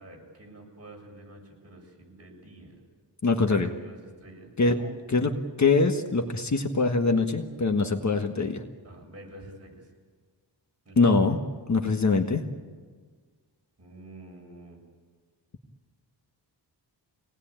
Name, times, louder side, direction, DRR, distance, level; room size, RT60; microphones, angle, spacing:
voice 1, 0.0-2.8 3.4-4.5 4.8-4.9 8.8-9.9 10.8-11.2 13.8-14.8, right 1 dB, 35° right, 0 dB, 7.8 m, -47 dB
voice 2, 3.2-3.7 4.6-4.8 5.1-5.3 5.6-8.6 11.0-11.4 11.7-12.4, left 3 dB, 40° left, 4 dB, 1.5 m, -23 dB
26.0 x 19.0 x 8.9 m, 1.5 s
wide cardioid pair, 110°, 43 cm